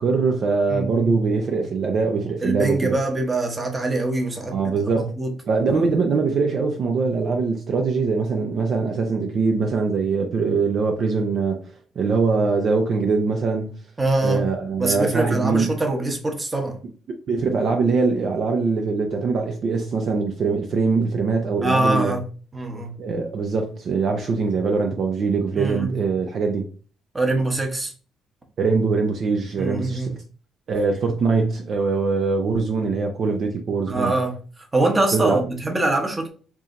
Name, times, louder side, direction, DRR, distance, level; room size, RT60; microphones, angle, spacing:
voice 1, 0.0-2.9 4.5-5.1 5.5-13.7 14.2-15.7 17.1-22.2 23.0-26.7 28.6-30.1 30.7-34.1 35.1-35.4, right 4 dB, 50° right, 0.6 m, -22 dB
voice 2, 0.7-1.1 2.4-5.3 5.7-5.8 14.0-14.5 14.8-16.8 21.6-22.3 22.5-23.0 25.6-25.9 27.1-27.9 29.6-30.1 33.9-34.4 34.7-36.3, right 2 dB, 20° right, 1.0 m, -23 dB
4.7 x 2.8 x 2.5 m
cardioid pair, 115°, 0 cm